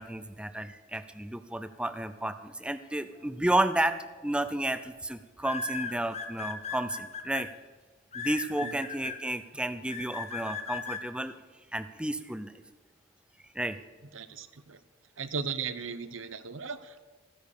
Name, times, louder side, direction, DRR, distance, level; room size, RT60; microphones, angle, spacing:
voice 1, 0.0-7.5 8.1-11.3 11.7-12.5 13.5-13.8, right 1 dB, 5° right, 11 dB, 0.6 m, -32 dB
sound 1, 3.9-4.2 5.4-7.4 8.1-9.2 9.9-11.0, left 6 dB, 35° left, 1.1 m, -37 dB
voice 2, 14.1-14.8 15.2-17.0, right 5 dB, 90° right, 13 dB, 0.9 m, -37 dB
15.0 x 10.5 x 6.7 m, 1.4 s
head